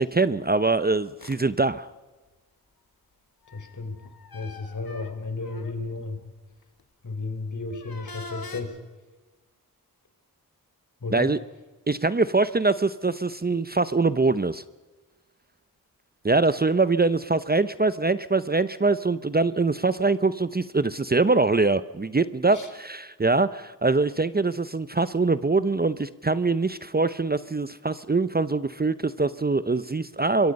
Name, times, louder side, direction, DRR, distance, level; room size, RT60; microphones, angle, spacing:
voice 1, 0.0-1.9 11.1-11.4 11.9-14.6 16.2-30.5, right 3 dB, 25° right, 14 dB, 0.8 m, -23 dB
sound 1, 1.2-1.4 3.4-6.0 6.6-6.8 7.7-8.6, left 3 dB, 70° left, 2.5 m, -43 dB
voice 2, 3.5-4.0 4.3-6.2 7.0-8.8 11.0-11.3 22.5-22.7, left 3 dB, 50° left, 7 dB, 4.0 m, -33 dB
25.5 x 23.0 x 5.4 m, 1.2 s
cardioid pair, 55°, 37 cm